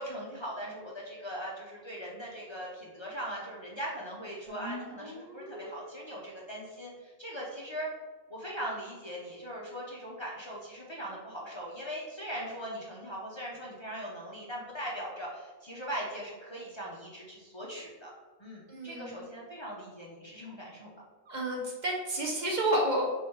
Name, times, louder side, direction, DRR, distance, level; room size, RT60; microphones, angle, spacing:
voice 1, 0.0-7.9 8.3-18.1 18.4-20.9, equal, 35° left, -4 dB, 0.6 m, -40 dB
sound 1, 4.5-6.4, equal, 25° right, 1.0 m, -44 dB
voice 2, 18.7-19.2 21.3-23.0, right 1 dB, 50° right, -2 dB, 0.8 m, -30 dB
4.7 x 3.2 x 3.1 m, 1.3 s
omnidirectional pair, 1.0 m